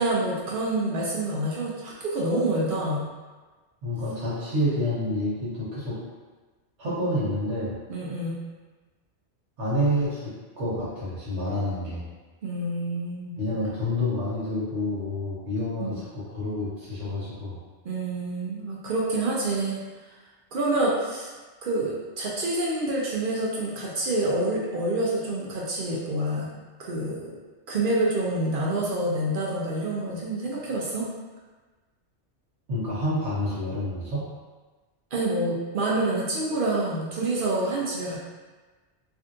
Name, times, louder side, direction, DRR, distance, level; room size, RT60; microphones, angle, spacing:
voice 1, 0.0-3.1 7.9-8.4 12.4-13.3 15.8-16.0 17.8-19.8 20.5-21.3 21.6-26.5 26.8-27.4 27.7-31.1 35.1-38.2, right 2 dB, 60° right, -4 dB, 0.6 m, -27 dB
voice 2, 3.8-6.0 6.8-7.7 9.6-12.0 13.4-17.6 32.7-34.3, left 1 dB, 90° right, -10 dB, 1.2 m, -28 dB
3.3 x 2.6 x 2.5 m, 1.3 s
omnidirectional pair, 1.2 m